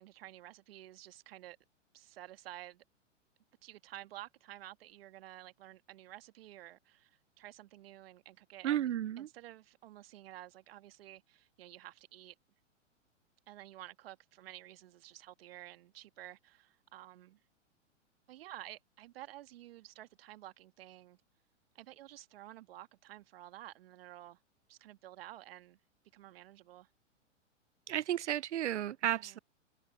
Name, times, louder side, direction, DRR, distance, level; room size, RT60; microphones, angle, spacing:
voice 1, 0.0-1.6 1.9-2.8 3.6-12.4 13.5-17.4 18.3-21.2 21.8-24.4 24.7-25.8 26.1-26.9 29.1-29.4, right 14 dB, 50° right, 2.0 m, -52 dB
voice 2, 8.6-9.3 27.9-29.4, right 11 dB, 65° right, 0.6 m, -33 dB
figure-of-eight pair, 110°, 38 cm